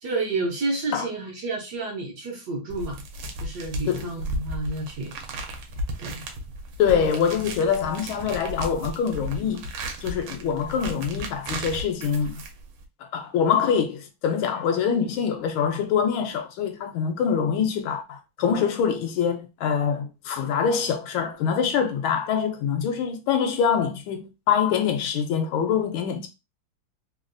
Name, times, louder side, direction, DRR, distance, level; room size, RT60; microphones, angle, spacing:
voice 1, 0.0-3.0 3.4-5.1 6.0-6.2, right 3 dB, 65° right, 1.1 m, -30 dB
sound 1, 2.7-12.9, right 1 dB, 85° right, 1.5 m, -35 dB
voice 2, 6.8-9.6 10.0-12.4 13.0-26.3, left 7 dB, 80° left, 1.4 m, -24 dB
3.6 x 2.3 x 2.5 m
omnidirectional pair, 2.3 m